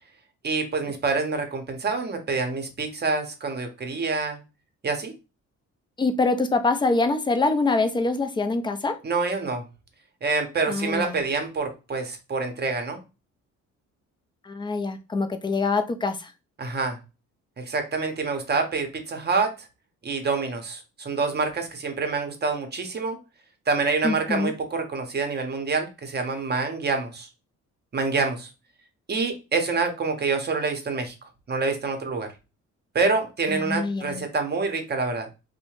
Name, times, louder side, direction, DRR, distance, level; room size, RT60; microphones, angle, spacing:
voice 1, 0.4-4.4 4.8-5.1 9.0-9.6 10.2-13.0 16.6-17.0 17.6-19.7 20.0-23.2 23.7-27.3 27.9-28.5 29.1-32.3 32.9-35.3, right 4 dB, 35° right, 0.7 m, -27 dB
voice 2, 6.0-9.0 10.7-11.2 14.5-16.2 24.0-24.5 33.5-34.3, left 3 dB, 15° left, 0.4 m, -24 dB
2.7 x 2.1 x 2.9 m
cardioid pair, 90°, 30 cm